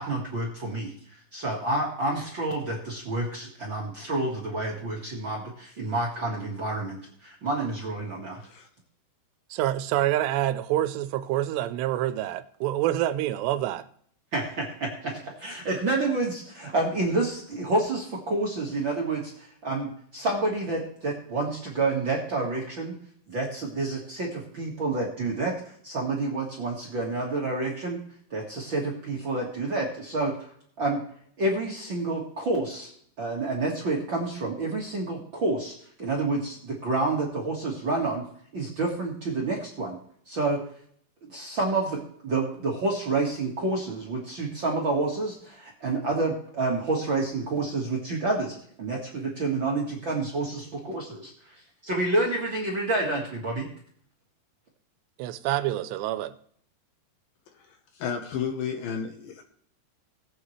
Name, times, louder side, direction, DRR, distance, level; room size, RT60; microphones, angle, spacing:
voice 1, 0.0-8.4 14.3-23.0 23.3-28.0 28.3-30.5 30.8-31.0 31.4-32.9 33.2-38.2 38.5-40.0 40.2-40.6 41.3-53.7, right 2 dB, 55° right, 1.3 m, -29 dB
voice 2, 9.5-13.9 55.2-56.3, right 13 dB, 85° right, 2.8 m, -27 dB
voice 3, 58.0-59.4, left 7 dB, 70° left, 2.4 m, -32 dB
19.0 x 8.4 x 3.2 m
omnidirectional pair, 4.9 m